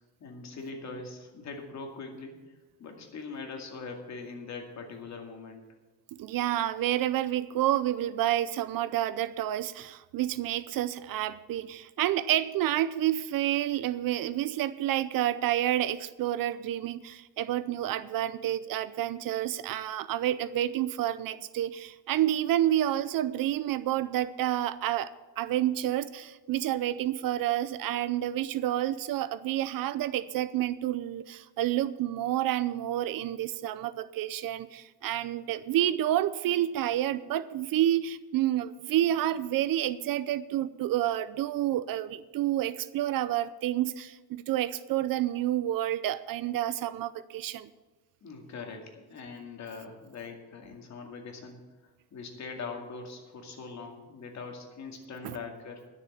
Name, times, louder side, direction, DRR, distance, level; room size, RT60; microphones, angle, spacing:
voice 1, 0.2-2.5 2.8-5.6 48.2-51.6 52.1-55.8, left 4 dB, 40° left, 3 dB, 2.3 m, -42 dB
voice 2, 6.1-25.1 25.4-47.7 55.2-55.4, right 12 dB, 55° right, 15 dB, 0.6 m, -29 dB
11.5 x 6.9 x 8.6 m, 1.2 s
cardioid pair, 145°, 41 cm